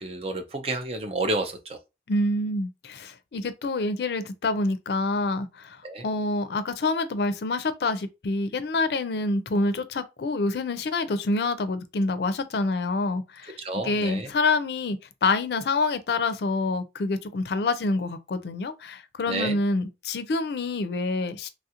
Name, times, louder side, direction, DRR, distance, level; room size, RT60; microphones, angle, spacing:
voice 1, 0.0-1.8 5.8-6.1 13.6-14.3 19.3-19.6, right 2 dB, 35° right, 0.5 m, -30 dB
voice 2, 2.1-13.6 13.8-21.5, left 2 dB, 70° left, 0.4 m, -27 dB
3.1 x 2.4 x 2.8 m
head